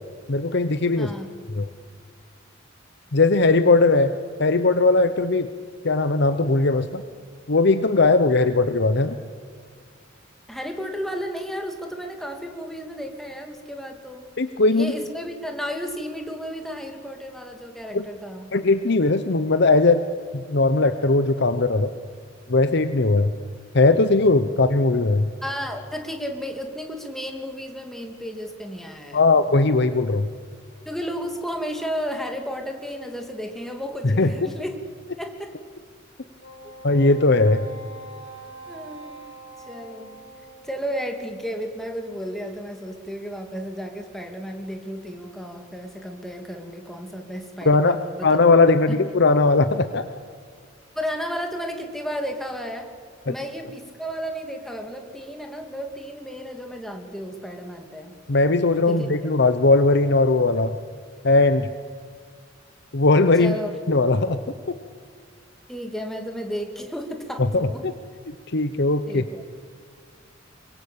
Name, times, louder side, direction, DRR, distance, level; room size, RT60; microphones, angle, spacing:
voice 1, 0.3-1.1 1.5-1.7 3.1-4.1 4.4-5.5 5.8-7.0 7.5-9.1 14.4-14.9 17.9-18.1 18.5-20.0 20.3-21.9 22.5-23.3 23.7-25.3 29.1-30.3 34.0-34.3 36.8-37.7 47.6-50.0 53.3-53.4 58.3-60.7 61.2-61.7 62.9-63.5 63.9-64.4 67.5-67.9 68.3-69.2, left 3 dB, 60° left, 10 dB, 0.9 m, -19 dB
voice 2, 1.0-1.3 10.5-14.2 14.7-18.5 25.4-29.4 30.9-34.8 35.2-35.6 38.7-39.2 39.7-40.1 40.6-48.3 48.9-49.0 50.9-52.9 53.3-58.1 58.9-59.1 63.4-63.7 65.7-67.8 69.1-69.4, equal, ahead, 3 dB, 2.7 m, -33 dB
Wind instrument woodwind instrument, 36.4-41.0, right 1 dB, 75° left, 6.1 m, -43 dB
24.0 x 22.5 x 8.7 m, 2.1 s
head